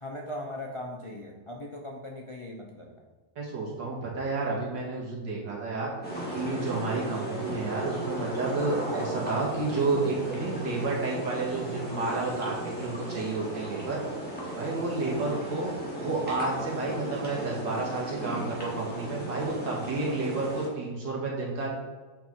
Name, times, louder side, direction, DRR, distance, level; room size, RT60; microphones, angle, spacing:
voice 1, 0.0-3.0 15.0-15.4, left 1 dB, 50° left, 0 dB, 0.3 m, -39 dB
voice 2, 3.4-5.9 6.3-14.0 14.6-15.7 16.0-21.7, right 3 dB, 80° right, -3 dB, 2.6 m, -30 dB
sound 1, 6.0-20.7, right 1 dB, 5° left, 2.4 m, -36 dB
7.5 x 5.4 x 4.5 m, 1.4 s
omnidirectional pair, 1.9 m